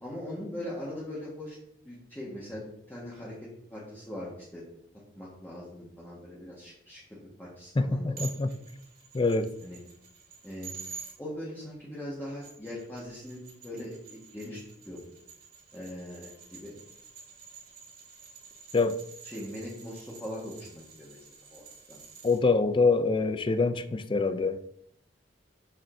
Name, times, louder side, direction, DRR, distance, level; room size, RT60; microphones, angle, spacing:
voice 1, 0.0-1.6 1.8-4.6 5.2-8.6 9.6-9.8 10.4-10.7 11.2-14.6 14.8-15.0 15.7-16.7 19.2-21.2 21.5-22.0, left 1 dB, 10° left, 1.5 m, -41 dB
voice 2, 7.8-8.5 9.1-9.5 18.7-19.0 22.2-24.6, left 3 dB, 25° left, 0.4 m, -25 dB
sound 1, 8.2-11.1 12.2-22.4, right 6 dB, 50° right, 2.3 m, -49 dB
7.2 x 6.9 x 2.7 m
head